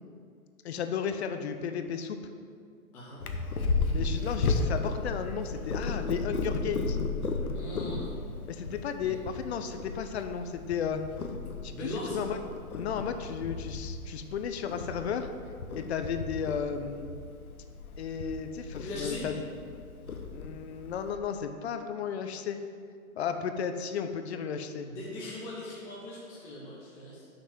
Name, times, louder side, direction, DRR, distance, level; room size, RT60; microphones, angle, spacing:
voice 1, 0.6-2.2 3.9-7.0 8.5-11.0 11.6-12.4 12.7-15.3 15.7-17.0 18.0-19.3 20.3-22.6 23.2-24.9, left 7 dB, 50° left, 8 dB, 0.7 m, -34 dB
Purr, 3.2-21.1, left 3 dB, 90° left, 1.0 m, -34 dB
voice 2, 7.5-8.1 9.0-9.2 11.7-12.2 18.8-19.2 24.9-27.3, left 1 dB, 5° left, -6 dB, 0.4 m, -39 dB
6.2 x 6.1 x 7.4 m, 2.2 s
hypercardioid pair, 140°, 42 cm